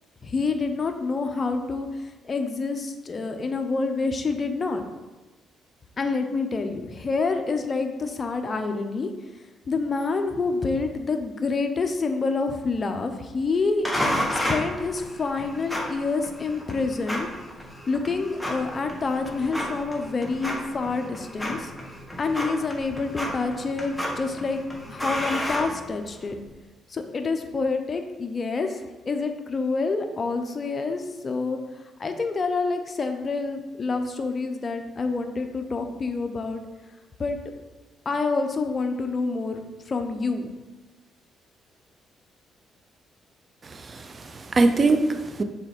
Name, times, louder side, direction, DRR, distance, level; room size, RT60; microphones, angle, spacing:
voice 1, 0.2-4.8 6.0-9.1 9.7-13.9 14.3-17.3 17.9-21.7 22.2-24.6 24.9-26.4 26.9-31.6 32.0-36.6 37.2-37.5 38.0-40.5, left 4 dB, 35° left, 5 dB, 0.8 m, -27 dB
sound 1, 13.8-26.3, equal, 5° left, 1.4 m, -32 dB
voice 2, 43.7-45.4, right 3 dB, 35° right, 8 dB, 0.6 m, -23 dB
6.0 x 4.1 x 5.3 m, 1.2 s
cardioid pair, 90°, 0 cm